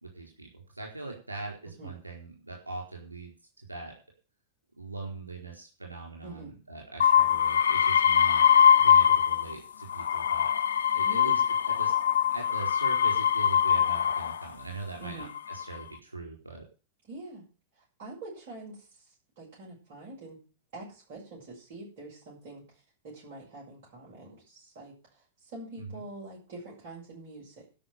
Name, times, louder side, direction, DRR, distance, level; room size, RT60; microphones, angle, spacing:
voice 1, 0.0-3.3 3.7-3.9 4.8-8.5 8.8-10.5 10.9-12.0 12.3-16.6 25.7-26.0, right 3 dB, 80° right, 0 dB, 4.3 m, -41 dB
sound 1, 7.0-9.5 9.9-14.4 15.2-15.8, left 8 dB, 65° left, 0.5 m, -23 dB
voice 2, 15.0-15.3 17.1-17.4 17.8-20.4 20.7-22.6 23.0-27.6, right 2 dB, 50° right, -6 dB, 7.5 m, -45 dB
12.5 x 6.2 x 9.4 m, 0.35 s
figure-of-eight pair, 90°, 0 cm